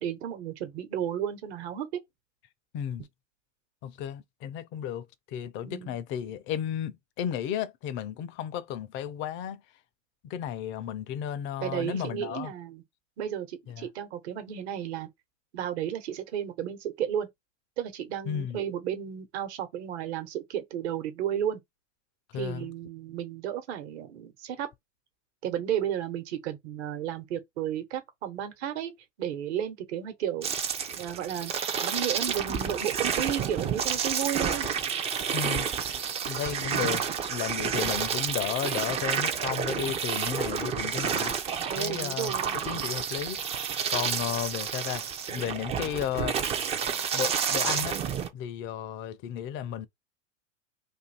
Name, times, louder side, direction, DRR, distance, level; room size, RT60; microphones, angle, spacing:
voice 1, 0.0-2.0 5.6-5.9 11.6-12.8 13.2-15.1 15.5-17.3 17.8-21.6 22.3-24.7 25.4-28.9 29.2-30.5 30.9-34.7 41.7-42.6, right 10 dB, 60° right, 1.2 m, -33 dB
voice 2, 2.7-3.0 3.8-9.6 10.2-12.5 13.7-13.9 14.8-14.9 18.3-18.6 22.3-22.7 35.3-35.7 36.2-37.0 37.3-41.3 41.7-43.4 43.9-46.4 47.1-48.0 48.3-49.9, left 9 dB, 30° left, 0.5 m, -33 dB
sound 1, 30.4-48.3, right 7 dB, 15° right, 0.4 m, -30 dB
2.6 x 2.6 x 4.1 m
hypercardioid pair, 110°, 37 cm